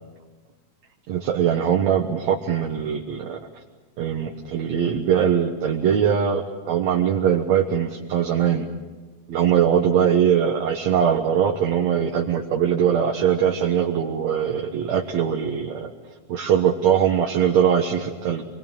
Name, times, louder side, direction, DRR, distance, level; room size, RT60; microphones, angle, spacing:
voice 1, 1.1-3.4 4.0-8.7 9.3-15.9 16.3-18.4, right 8 dB, 65° right, 2 dB, 2.4 m, -21 dB
26.0 x 22.5 x 9.0 m, 1.3 s
omnidirectional pair, 3.6 m